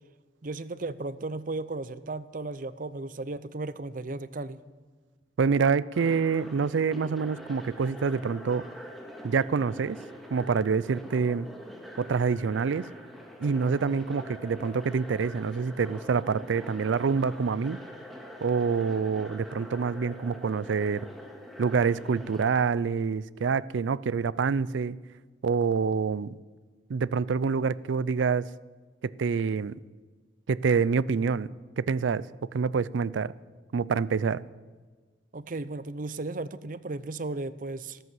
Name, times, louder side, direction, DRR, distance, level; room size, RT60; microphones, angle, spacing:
voice 1, 0.4-4.6 24.2-24.3 35.3-38.0, right 2 dB, 45° right, 0.6 m, -35 dB
voice 2, 5.4-8.6 9.2-10.0 10.3-11.5 12.0-12.9 13.4-17.8 18.4-21.1 21.6-25.0 25.4-26.3 26.9-28.5 29.0-29.8 30.5-32.3 32.5-33.3 33.7-34.4, right 5 dB, 90° right, 0.4 m, -26 dB
sound 1, 5.9-22.5, equal, ahead, 1.8 m, -44 dB
14.0 x 13.5 x 7.6 m
head